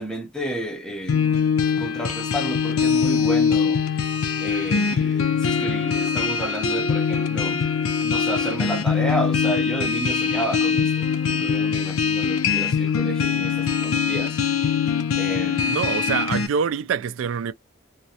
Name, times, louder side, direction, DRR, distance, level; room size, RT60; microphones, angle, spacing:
voice 1, 0.0-1.3 1.8-3.8 4.4-7.6 8.0-14.4 15.2-15.8, right 1 dB, 5° left, 0.5 m, -31 dB
sound 1, 1.1-16.5, left 6 dB, 90° left, 0.4 m, -22 dB
voice 2, 15.7-17.5, right 6 dB, 75° right, 0.3 m, -25 dB
2.4 x 2.0 x 2.7 m
head